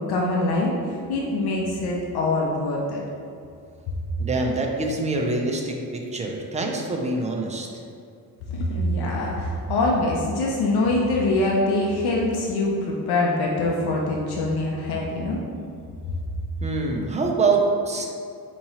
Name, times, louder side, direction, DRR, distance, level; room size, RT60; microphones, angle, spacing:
voice 1, 0.1-0.7 1.1-3.0 8.5-15.4, left 2 dB, 80° left, -2 dB, 0.6 m, -24 dB
voice 2, 4.2-7.8 16.6-18.1, right 3 dB, 20° right, 1 dB, 0.3 m, -25 dB
4.6 x 2.9 x 2.8 m, 2.4 s
wide cardioid pair, 145°, 38 cm